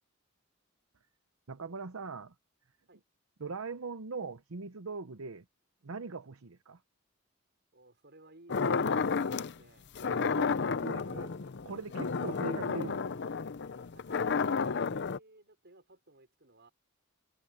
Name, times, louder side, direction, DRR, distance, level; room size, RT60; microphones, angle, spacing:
voice 1, 1.5-2.3 3.4-5.4 5.8-6.8 10.1-10.6 10.8-11.3 11.6-13.2 13.7-13.8, right 4 dB, 80° right, 0.9 m, -41 dB
voice 2, 7.7-9.9 10.8-11.5 13.9-16.7, right 2 dB, 55° right, 5.7 m, -59 dB
sound 1, 8.5-9.5 9.9-15.2, left 5 dB, 55° left, 0.6 m, -31 dB
head